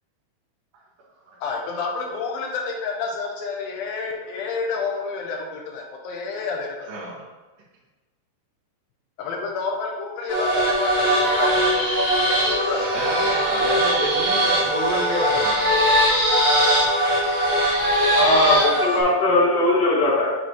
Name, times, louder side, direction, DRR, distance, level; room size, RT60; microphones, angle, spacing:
voice 1, 1.4-6.9 9.2-12.9 15.2-15.3, left 4 dB, 80° left, 1 dB, 2.6 m, -29 dB
voice 2, 6.9-7.2 12.9-15.7, right 1 dB, 70° right, -6 dB, 3.3 m, -29 dB
sound 1, 10.3-19.0, equal, 50° right, 0.9 m, -20 dB
voice 3, 18.1-20.4, left 2 dB, 60° left, -6 dB, 3.0 m, -19 dB
7.8 x 4.1 x 3.1 m, 1.2 s
omnidirectional pair, 4.2 m